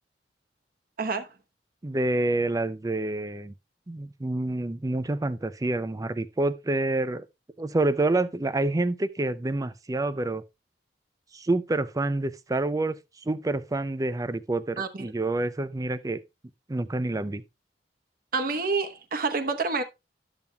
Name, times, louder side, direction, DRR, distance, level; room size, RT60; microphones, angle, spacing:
voice 1, 1.8-3.5 3.9-7.2 7.6-10.4 11.3-13.0 13.3-16.2 16.7-17.4, right 2 dB, 20° right, 0.5 m, -27 dB
voice 2, 14.8-15.1 18.3-19.8, right 4 dB, 55° right, 1.0 m, -28 dB
12.0 x 7.1 x 2.2 m
head